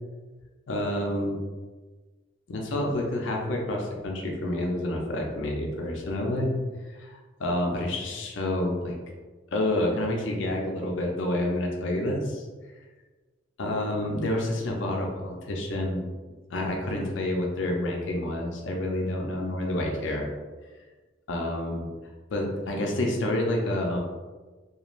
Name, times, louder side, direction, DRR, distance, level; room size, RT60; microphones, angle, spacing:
voice 1, 0.7-1.4 2.5-6.5 6.9-7.1 7.4-9.0 9.5-12.4 13.6-16.1 16.5-20.3 21.3-21.9 22.3-24.0, left 1 dB, 75° left, 0 dB, 0.5 m, -28 dB
2.4 x 2.3 x 3.0 m, 1.3 s
head